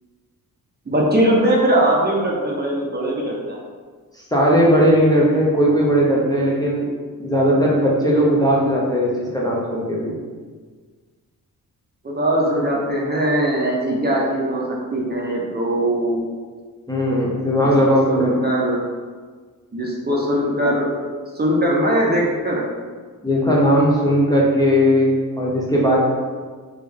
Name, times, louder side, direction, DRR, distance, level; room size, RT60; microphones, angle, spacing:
voice 1, 0.9-3.6 12.0-14.6 14.9-16.2 18.1-18.8 19.7-20.9 21.3-22.6, right 1 dB, 25° right, -3 dB, 0.7 m, -20 dB
voice 2, 4.1-6.9 7.2-10.2 16.9-18.3 23.2-26.0, equal, 10° left, -5 dB, 0.6 m, -18 dB
3.4 x 2.5 x 3.5 m, 1.5 s
cardioid pair, 95°, 36 cm